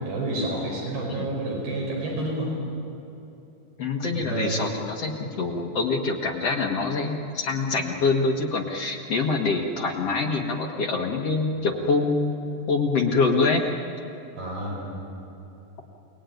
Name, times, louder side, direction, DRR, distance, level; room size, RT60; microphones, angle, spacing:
voice 1, 0.0-2.5 4.1-4.7 14.4-15.0, right 1 dB, 85° right, -1 dB, 7.0 m, -29 dB
voice 2, 3.8-13.6, left 3 dB, 50° left, 1 dB, 2.1 m, -25 dB
29.5 x 20.5 x 9.3 m, 2.9 s
omnidirectional pair, 4.4 m